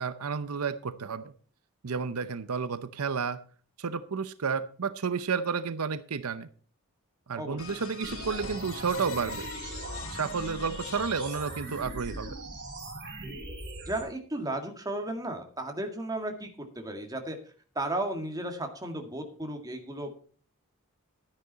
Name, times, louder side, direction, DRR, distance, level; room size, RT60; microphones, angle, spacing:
voice 1, 0.0-1.3 1.8-3.4 3.8-6.5 7.3-9.5 10.1-12.4, right 5 dB, 80° right, 13 dB, 0.7 m, -31 dB
voice 2, 7.4-7.8 13.9-17.4 17.8-20.1, right 1 dB, 15° right, 4 dB, 1.9 m, -34 dB
sound 1, 7.6-12.2, left 4 dB, 65° left, 1.2 m, -42 dB
sound 2, 8.0-14.0, right 2 dB, 50° right, 6.1 m, -40 dB
12.0 x 10.0 x 4.1 m, 0.42 s
head